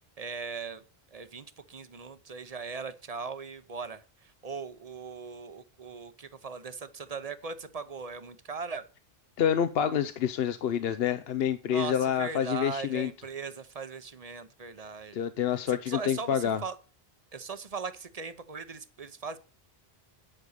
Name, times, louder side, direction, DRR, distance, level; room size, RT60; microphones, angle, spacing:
voice 1, 0.2-0.8 1.1-8.8 11.7-15.2 15.7-16.8 17.3-19.4, right 5 dB, 40° right, 12 dB, 0.8 m, -39 dB
voice 2, 9.4-13.1 15.1-16.6, left 9 dB, 75° left, 11 dB, 0.9 m, -28 dB
9.9 x 5.3 x 6.5 m, 0.35 s
omnidirectional pair, 1.0 m